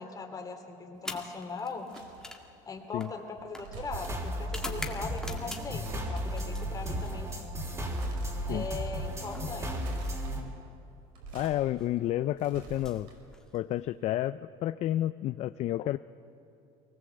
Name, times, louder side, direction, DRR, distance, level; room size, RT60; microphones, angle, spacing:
voice 1, 0.0-1.9 2.6-7.3 8.5-10.0, left 4 dB, 25° left, 4 dB, 2.7 m, -40 dB
sound 1, 1.0-5.9 6.3-7.5 8.7-10.6 11.6-11.9 12.7-13.8, left 1 dB, 5° left, 2.0 m, -45 dB
sound 2, 1.9-2.3 3.4-4.3 5.4-6.4 7.8-8.3 8.8-8.9 9.5-10.3 11.0-11.6 12.0-13.4, right 5 dB, 75° right, 5.1 m, -46 dB
sound 3, 3.9-10.4, equal, 20° right, 3.3 m, -34 dB
voice 2, 11.3-13.1 13.5-16.0, left 13 dB, 45° left, 13 dB, 0.4 m, -30 dB
23.0 x 19.5 x 7.9 m, 2.8 s
cardioid pair, 125°, 15 cm